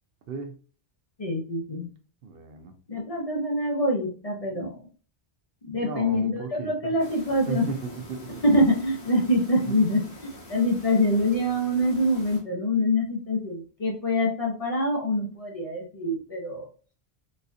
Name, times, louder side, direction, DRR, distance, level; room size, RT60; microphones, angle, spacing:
voice 1, 1.2-1.9 2.9-4.7 5.6-7.7 8.4-16.7, left 1 dB, 40° left, -1 dB, 0.7 m, -25 dB
voice 2, 2.2-2.7 5.7-6.9 7.5-8.4 9.7-9.9, right 5 dB, 65° right, 5 dB, 0.8 m, -35 dB
sound 1, 7.0-12.4, equal, 90° left, 1.3 m, -45 dB
4.1 x 2.4 x 2.5 m, 0.39 s
omnidirectional pair, 1.1 m